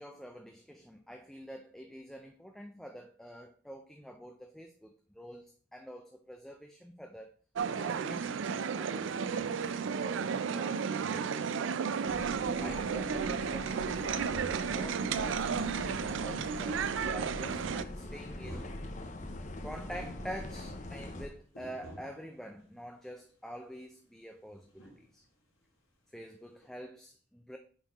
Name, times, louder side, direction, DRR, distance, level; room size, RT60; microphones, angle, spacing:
voice 1, 0.0-7.3 7.7-11.8 12.5-18.7 19.6-25.2 26.1-27.6, equal, ahead, 0.4 m, -47 dB
sound 1, 7.6-17.8, right 6 dB, 65° right, 0.4 m, -33 dB
sound 2, 12.0-21.3, left 1 dB, 35° left, 0.6 m, -43 dB
sound 3, 14.3-15.8 17.6-19.2 19.5-22.4 24.7-25.1 26.6-26.7, equal, 85° left, 2.9 m, -50 dB
9.1 x 4.3 x 3.0 m
head